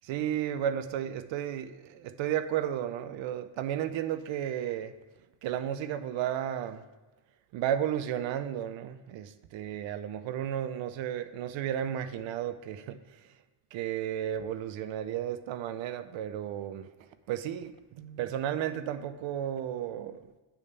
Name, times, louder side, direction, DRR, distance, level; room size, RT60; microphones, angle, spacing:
voice 1, 0.0-4.9 5.4-6.8 7.5-13.3 13.7-20.3, right 10 dB, 85° right, 0.6 m, -33 dB
9.1 x 3.3 x 6.6 m
cardioid pair, 75°, 45 cm